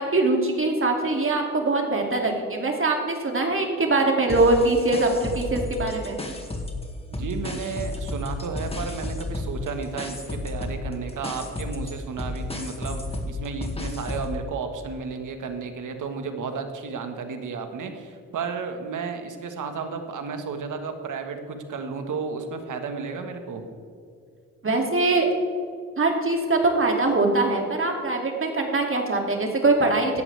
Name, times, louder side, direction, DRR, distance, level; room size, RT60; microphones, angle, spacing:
voice 1, 0.0-6.2 24.6-25.3 26.0-30.2, right 2 dB, 40° right, 2 dB, 2.8 m, -22 dB
sound 1, 4.3-6.9 7.1-14.4, left 2 dB, 20° left, 2.2 m, -32 dB
voice 2, 7.1-23.6, right 5 dB, 70° right, 6 dB, 1.7 m, -33 dB
16.0 x 11.5 x 3.5 m, 2.3 s
cardioid pair, 60°, 32 cm